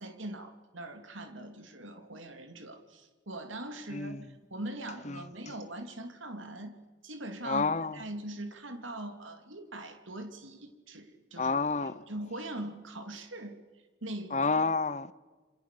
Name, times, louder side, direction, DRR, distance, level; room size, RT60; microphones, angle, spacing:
voice 1, 0.0-6.8 7.0-7.6 7.9-11.6 12.1-13.6 14.0-14.5, right 1 dB, 85° right, 2.8 m, -41 dB
voice 2, 3.9-4.2 5.1-5.2 7.4-8.0 11.4-12.0 14.3-15.1, left 4 dB, 35° left, 0.8 m, -29 dB
27.5 x 26.5 x 6.9 m
head